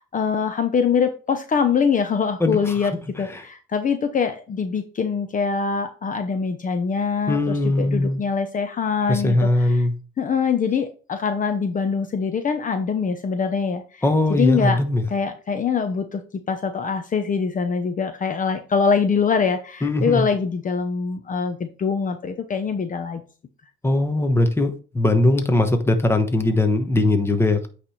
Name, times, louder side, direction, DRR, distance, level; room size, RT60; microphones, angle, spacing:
voice 1, 0.0-2.9 3.2-9.9 10.2-14.0 14.3-14.8 15.1-16.2 16.5-23.2, left 6 dB, 40° left, 0.8 m, -23 dB
voice 2, 7.3-8.2 9.1-9.9 14.0-15.0 19.8-20.3 23.8-24.7 24.9-27.7, left 2 dB, 10° left, 1.2 m, -20 dB
8.8 x 3.4 x 4.3 m
cardioid pair, 90°, 20 cm